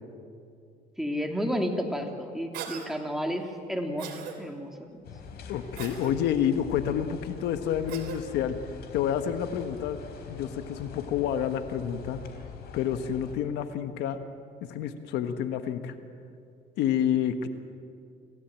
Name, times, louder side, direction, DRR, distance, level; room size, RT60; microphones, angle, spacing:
voice 1, 1.0-5.0, equal, ahead, 3 dB, 2.7 m, -32 dB
Cough, 2.5-2.9 4.0-4.3 5.8-6.1 7.9-8.2, right 9 dB, 75° right, 3.5 m, -38 dB
sound 1, 5.0-13.4, left 5 dB, 70° left, 3.6 m, -44 dB
voice 2, 5.5-8.6 8.9-10.0 10.3-12.2 12.7-14.2 14.6-15.9 16.8-17.5, left 9 dB, 85° left, 9 dB, 1.4 m, -29 dB
26.5 x 16.5 x 9.0 m, 2.5 s
cardioid pair, 110°, 17 cm